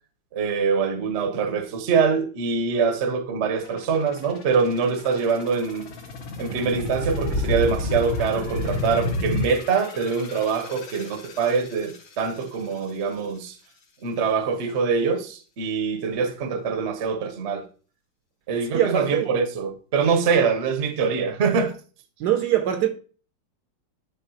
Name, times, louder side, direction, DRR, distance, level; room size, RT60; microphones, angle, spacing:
voice 1, 0.3-5.9 6.4-13.6 14.0-17.6 18.5-21.7, right 5 dB, 50° right, 0.9 m, -24 dB
sound 1, 3.6-14.3 14.7-14.8, left 4 dB, 85° left, 2.1 m, -43 dB
sound 2, 5.8-9.5, left 2 dB, 55° left, 1.0 m, -28 dB
voice 2, 18.7-19.3 22.2-22.9, right 11 dB, 70° right, 1.2 m, -22 dB
10.5 x 4.2 x 2.8 m
omnidirectional pair, 2.0 m